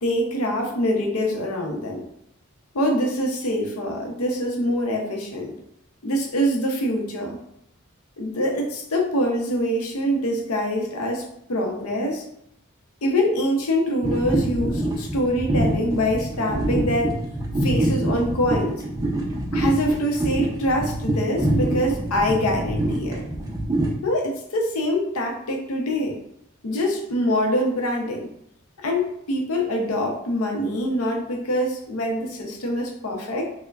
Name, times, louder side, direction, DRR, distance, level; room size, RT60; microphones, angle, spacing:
voice 1, 0.0-2.0 2.7-5.5 6.0-7.4 8.2-12.2 13.0-17.2 17.6-18.8 19.5-23.3 24.0-26.2 26.6-28.3 28.8-33.5, equal, 80° left, 1 dB, 0.7 m, -24 dB
sound 1, 14.0-23.9, right 1 dB, 15° right, 0.4 m, -25 dB
4.5 x 2.1 x 2.4 m, 0.73 s
head